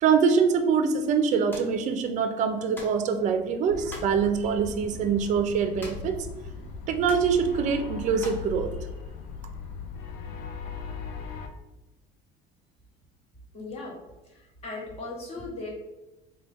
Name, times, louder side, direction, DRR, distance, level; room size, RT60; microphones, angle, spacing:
voice 1, 0.0-6.3 6.9-8.7, right 6 dB, 45° right, 7 dB, 0.4 m, -24 dB
sound 1, 1.5-1.8 2.7-3.0 3.9-4.2 5.8-6.2 6.5-6.6 7.1-7.3 8.2-8.5, equal, 10° left, 0.6 m, -43 dB
sound 2, 3.7-11.5, left 5 dB, 80° left, 0.5 m, -38 dB
voice 2, 13.5-14.0 14.2-15.7, left 2 dB, 35° left, -2 dB, 1.0 m, -38 dB
4.1 x 2.2 x 3.3 m, 1.0 s
cardioid pair, 155°, 18 cm